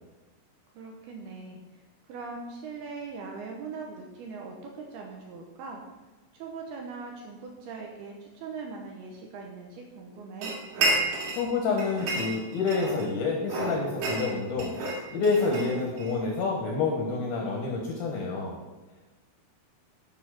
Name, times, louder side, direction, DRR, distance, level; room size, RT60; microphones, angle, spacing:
voice 1, 0.8-1.8 2.1-5.8 6.3-10.6, right 4 dB, 75° right, 1 dB, 2.4 m, -41 dB
sound 1, 10.4-11.5 11.8-13.1 13.5-16.2, right 2 dB, 50° right, 3.1 m, -30 dB
voice 2, 11.4-14.7 15.1-18.6, left 4 dB, 70° left, 1 dB, 2.4 m, -28 dB
9.8 x 5.5 x 6.4 m, 1.2 s
omnidirectional pair, 5.7 m